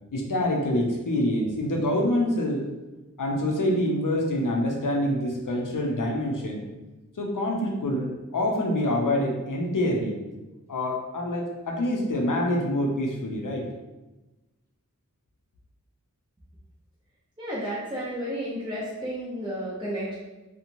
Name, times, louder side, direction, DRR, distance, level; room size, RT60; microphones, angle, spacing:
voice 1, 0.1-2.7 3.2-6.7 7.2-10.2 10.7-13.6, left 1 dB, 70° left, -1 dB, 0.6 m, -26 dB
voice 2, 17.4-20.1, equal, 15° right, -9 dB, 0.6 m, -32 dB
2.9 x 2.1 x 2.6 m, 1.1 s
wide cardioid pair, 40°, 33 cm